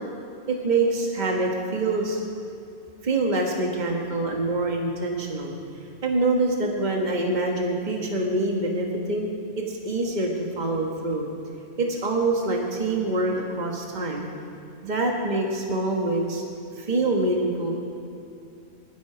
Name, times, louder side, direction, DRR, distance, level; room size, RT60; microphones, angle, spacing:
voice 1, 0.5-2.2 3.0-5.5 6.0-9.3 9.6-11.2 11.8-14.3 14.8-16.4 16.8-17.8, right 2 dB, 40° right, 0 dB, 1.7 m, -25 dB
20.5 x 12.0 x 5.0 m, 2.7 s
omnidirectional pair, 1.2 m